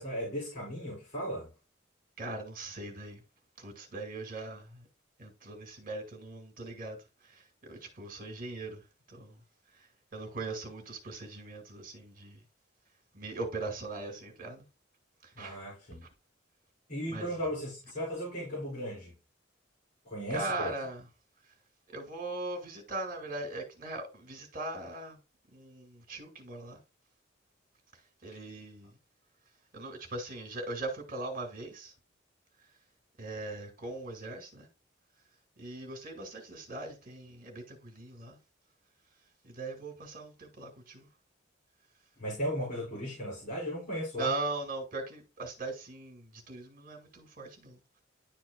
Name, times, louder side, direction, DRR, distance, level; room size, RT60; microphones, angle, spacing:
voice 1, 0.0-1.5 15.3-16.0 16.9-19.1 20.0-20.7 42.2-44.3, equal, 40° left, 4.1 m, -36 dB
voice 2, 2.2-3.2 3.6-4.8 5.2-7.0 7.2-8.8 9.1-9.4 9.7-12.4 13.1-14.6 15.2-15.6 17.1-17.3 20.3-21.0 21.9-25.2 25.5-26.8 28.2-28.9 29.7-31.9 33.2-34.7 35.6-38.4 39.4-41.1 44.2-47.8, right 2 dB, 45° right, 2.2 m, -40 dB
11.0 x 4.3 x 2.3 m
head